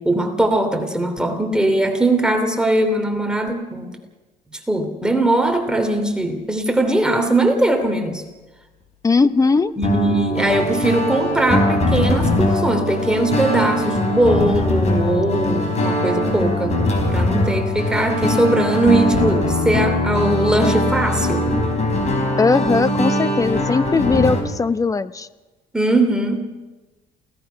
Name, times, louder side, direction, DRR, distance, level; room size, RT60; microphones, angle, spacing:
voice 1, 0.0-4.0 4.7-8.2 9.8-16.7 17.1-21.5 25.7-26.5, right 1 dB, 5° right, 4 dB, 3.0 m, -20 dB
voice 2, 9.0-9.7 22.4-25.3, left 4 dB, 20° left, 14 dB, 0.8 m, -18 dB
sound 1, 9.8-24.4, left 1 dB, 40° left, 4.7 m, -21 dB
28.5 x 18.0 x 5.7 m, 1.2 s
cardioid pair, 110°, 17 cm